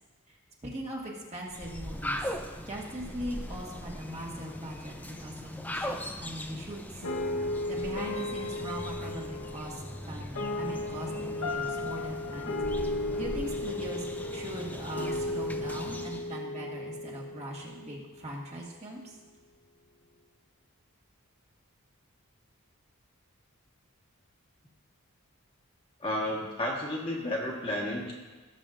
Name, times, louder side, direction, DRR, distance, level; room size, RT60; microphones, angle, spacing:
voice 1, 0.6-2.2 2.7-6.8 7.7-9.8 10.1-12.6 13.1-19.1, right 1 dB, 30° right, -3 dB, 1.6 m, -40 dB
sound 1, 1.5-16.4, left 1 dB, 10° left, 0.5 m, -40 dB
sound 2, 7.0-18.1, left 2 dB, 70° left, 1.1 m, -35 dB
voice 2, 26.0-28.1, left 1 dB, 25° left, -3 dB, 1.5 m, -32 dB
17.5 x 7.1 x 2.6 m, 1.3 s
head